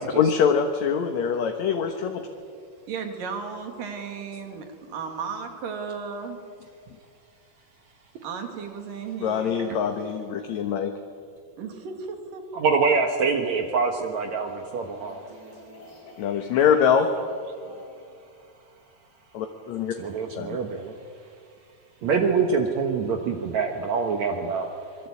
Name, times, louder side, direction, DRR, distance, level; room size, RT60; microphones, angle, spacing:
voice 1, 0.2-2.3 9.2-10.9 16.2-17.1 19.3-19.9 20.4-20.6, left 7 dB, 65° left, 5 dB, 2.3 m, -23 dB
voice 2, 2.9-6.4 8.2-9.8 11.6-12.4, right 5 dB, 80° right, 5 dB, 4.0 m, -35 dB
voice 3, 12.5-15.2 20.0-21.0 22.0-24.7, right 5 dB, 60° right, 4 dB, 2.4 m, -25 dB
sound 1, 14.9-18.5, left 1 dB, 90° left, 7.6 m, -47 dB
25.5 x 22.5 x 8.5 m, 2.3 s
omnidirectional pair, 3.9 m